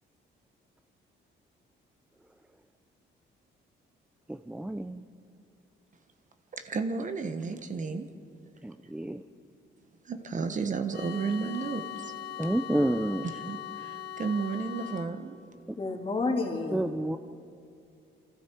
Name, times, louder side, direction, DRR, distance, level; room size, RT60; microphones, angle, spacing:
voice 1, 4.3-5.0 8.6-9.2 12.4-13.3 16.7-17.2, right 1 dB, 5° right, 9 dB, 0.5 m, -29 dB
voice 2, 6.5-8.1 10.0-12.1 13.3-15.4, right 4 dB, 40° right, 8 dB, 1.1 m, -33 dB
sound 1, 10.9-15.1, left 10 dB, 55° left, 2.9 m, -40 dB
voice 3, 15.8-16.9, left 3 dB, 30° left, 2 dB, 2.6 m, -30 dB
28.0 x 24.0 x 4.5 m, 2.5 s
cardioid pair, 125°, 20 cm